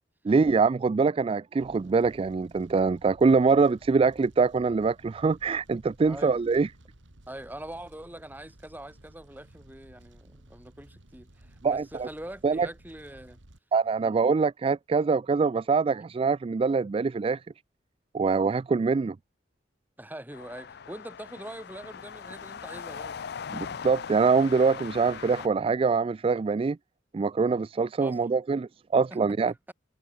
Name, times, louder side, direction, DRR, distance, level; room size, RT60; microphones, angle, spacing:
voice 1, 0.2-6.7 11.6-12.1 12.4-12.7 13.7-17.4 18.1-19.2 23.5-26.8 27.1-29.5, right 4 dB, 30° right, 0.3 m, -24 dB
Fire, 1.6-13.6, right 1 dB, 85° right, 2.6 m, -55 dB
voice 2, 6.0-6.5 7.3-13.4 14.0-14.2 20.0-23.3 28.0-28.3 29.1-29.2 29.5-29.7, right 1 dB, 10° right, 3.7 m, -43 dB
sound 1, 20.3-25.5, left 7 dB, 60° left, 0.5 m, -40 dB
head